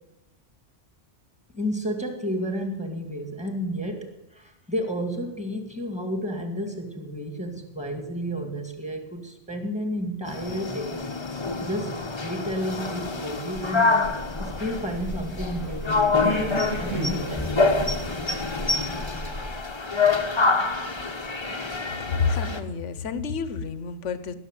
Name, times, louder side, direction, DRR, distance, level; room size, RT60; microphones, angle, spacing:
voice 1, 1.5-11.1 11.6-14.1 14.4-17.6, equal, 5° right, 4 dB, 2.1 m, -32 dB
sound 1, 10.3-22.6, left 3 dB, 25° left, 1.0 m, -26 dB
sound 2, 14.0-19.5, equal, 90° right, 5.3 m, -34 dB
voice 2, 22.0-24.3, left 5 dB, 75° left, 13 dB, 1.2 m, -29 dB
16.0 x 7.0 x 9.1 m, 0.91 s
omnidirectional pair, 1.3 m